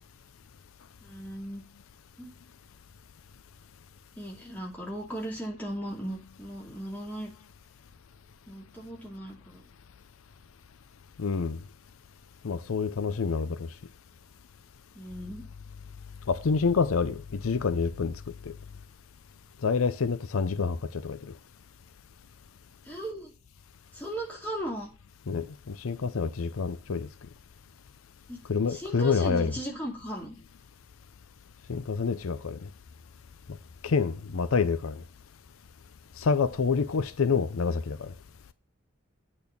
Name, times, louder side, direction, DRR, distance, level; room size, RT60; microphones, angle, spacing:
voice 1, 1.0-1.6 2.2-2.3 4.2-7.3 8.5-9.6 14.9-15.5 22.8-23.3 23.9-24.9 28.3-28.4 28.7-30.4, right 1 dB, 10° left, 2.5 m, -37 dB
voice 2, 11.2-11.6 12.4-13.7 16.3-18.1 18.5-18.6 19.6-20.8 21.0-21.2 25.3-27.1 28.5-29.5 31.7-32.6 33.8-35.0 36.2-38.1, left 5 dB, 85° left, 0.5 m, -27 dB
8.7 x 4.2 x 7.0 m
head